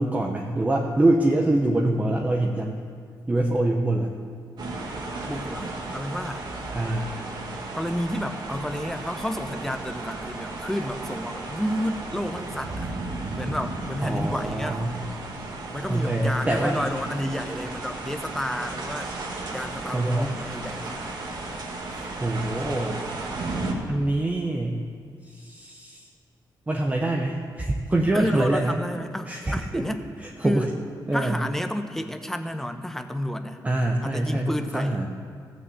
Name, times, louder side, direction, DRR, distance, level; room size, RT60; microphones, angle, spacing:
voice 1, 0.0-2.8 3.3-4.1 6.7-7.1 14.0-15.0 15.9-16.8 19.9-20.3 22.2-23.0 23.9-24.8 25.2-26.1 26.7-28.7 29.3-29.9 30.4-30.7 31.1-31.4 33.6-35.1, right 1 dB, 20° right, 0 dB, 1.0 m, -24 dB
sound 1, 4.6-23.7, right 3 dB, 65° right, 1.9 m, -34 dB
voice 2, 5.3-6.5 7.7-13.0 13.3-14.8 15.7-19.1 19.5-21.2 28.1-30.0 30.4-30.7 31.1-33.6 34.0-35.0, equal, 5° left, 7 dB, 0.9 m, -31 dB
15.0 x 6.3 x 8.0 m, 2.2 s
cardioid pair, 95°, 8 cm